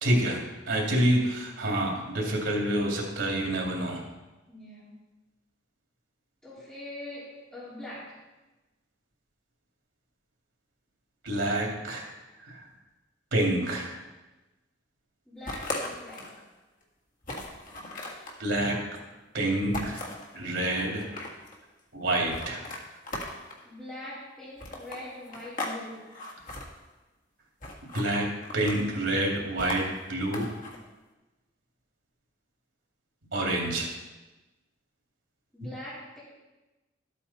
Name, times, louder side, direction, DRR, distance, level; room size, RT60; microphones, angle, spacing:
voice 1, 0.0-4.0 11.2-12.0 12.5-12.6 13.3-13.9 18.4-18.8 19.3-20.0 20.3-21.1 21.9-22.6 27.9-28.3 28.5-30.5 33.3-33.9, right 1 dB, 85° right, -1 dB, 2.6 m, -27 dB
voice 2, 4.5-5.0 6.4-8.1 15.3-16.4 23.6-26.1 35.5-36.2, left 1 dB, 5° left, -12 dB, 3.9 m, -42 dB
sound 1, 15.5-16.4 16.8-16.9 17.2-18.4 19.7-20.3 20.9-21.6 22.3-23.6 24.6-25.8 26.0-26.6 27.6-28.1 28.4-28.9 29.6-30.8, left 2 dB, 45° left, 1.7 m, -37 dB
12.0 x 8.4 x 4.2 m, 1.1 s
head